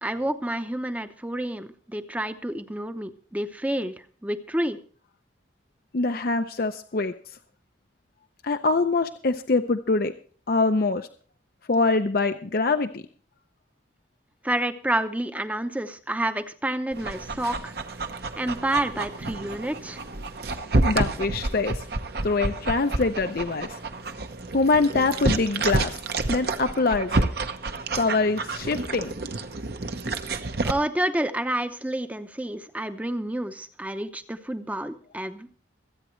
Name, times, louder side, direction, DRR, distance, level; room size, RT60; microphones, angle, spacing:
voice 1, 0.0-3.9 4.2-4.8 14.4-17.7 18.4-20.0 30.6-35.5, right 1 dB, 10° right, 10 dB, 0.7 m, -29 dB
voice 2, 5.9-7.1 8.4-10.1 10.5-11.1 11.7-13.0 20.8-21.8 22.2-23.8 24.5-25.9 26.3-27.3 28.0-29.1, left 3 dB, 55° left, 8 dB, 0.6 m, -24 dB
Dog, 16.9-30.7, right 2 dB, 55° right, 0.9 m, -29 dB
25.0 x 8.9 x 3.1 m, 0.43 s
head